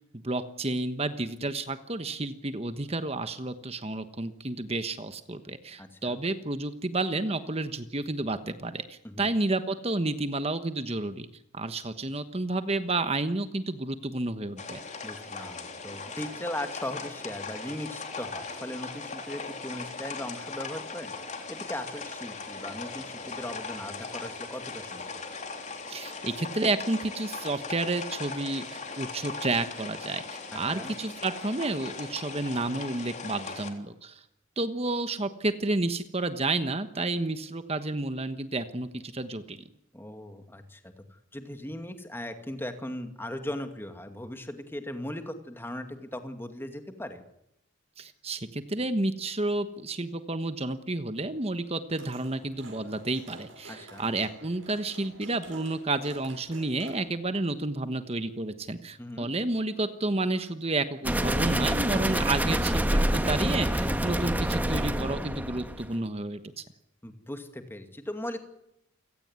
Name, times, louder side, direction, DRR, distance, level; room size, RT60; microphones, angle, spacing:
voice 1, 0.2-11.3 11.5-14.8 25.9-34.2 34.6-39.6 48.0-66.6, right 2 dB, 30° right, 10 dB, 1.2 m, -31 dB
voice 2, 5.8-6.2 9.0-9.3 15.0-21.1 21.5-25.0 30.5-30.9 39.9-47.2 53.7-54.1 59.0-59.3 67.0-68.4, left 1 dB, 10° left, 7 dB, 2.4 m, -38 dB
sound 1, 14.6-33.7, left 4 dB, 35° left, 3.5 m, -39 dB
sound 2, 51.9-56.9, right 2 dB, 80° right, 7.3 m, -49 dB
sound 3, 61.0-65.9, right 1 dB, 10° right, 1.5 m, -27 dB
29.0 x 17.0 x 9.6 m, 0.82 s
head